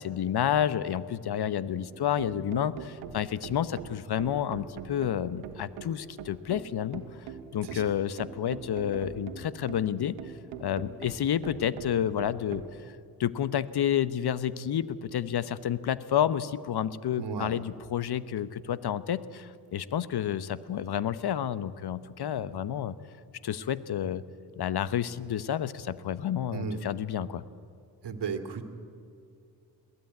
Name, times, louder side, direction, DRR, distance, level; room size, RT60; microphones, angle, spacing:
voice 1, 0.0-7.1 7.5-10.3 10.6-23.0 23.4-24.2 24.6-27.4, left 9 dB, 50° left, 16 dB, 1.0 m, -30 dB
sound 1, 1.8-12.7, right 7 dB, 80° right, 1.5 m, -43 dB
voice 2, 7.6-8.0 17.2-17.6 26.5-26.8 28.0-28.6, right 5 dB, 55° right, 7 dB, 2.3 m, -35 dB
21.5 x 16.0 x 9.5 m, 2.4 s
hypercardioid pair, 50°, 49 cm